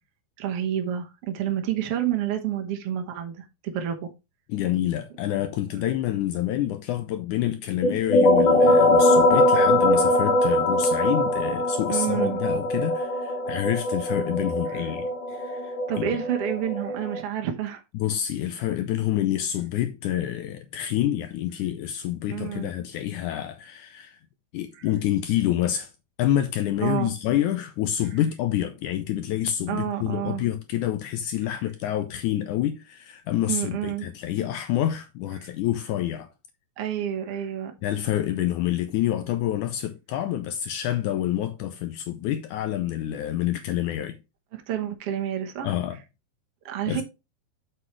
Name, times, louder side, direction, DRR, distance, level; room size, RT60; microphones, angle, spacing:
voice 1, 0.4-4.1 11.9-12.4 14.7-14.9 15.9-17.8 22.3-22.7 24.8-24.9 26.8-27.1 29.7-30.4 33.5-34.1 35.4-35.5 36.8-37.7 44.5-45.7 46.6-47.0, right 10 dB, 80° right, 1.3 m, -29 dB
voice 2, 4.5-16.1 17.9-24.2 24.5-25.9 26.2-36.3 37.8-44.2 45.6-46.0 46.9-47.0, left 12 dB, 85° left, 1.7 m, -27 dB
sound 1, 7.8-17.2, left 1 dB, 65° left, 2.4 m, -22 dB
7.6 x 6.3 x 3.1 m
omnidirectional pair, 4.3 m